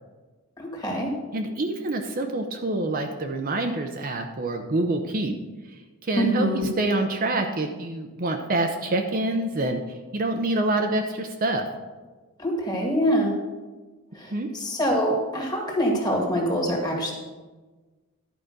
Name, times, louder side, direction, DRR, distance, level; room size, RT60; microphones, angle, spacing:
voice 1, 0.6-1.1 6.2-6.7 12.4-13.4 14.1-17.1, equal, 20° left, 0 dB, 1.8 m, -25 dB
voice 2, 1.3-5.4 6.0-9.8 10.1-11.7 14.3-14.5, right 2 dB, 40° right, 4 dB, 0.7 m, -26 dB
11.0 x 5.1 x 6.5 m, 1.3 s
head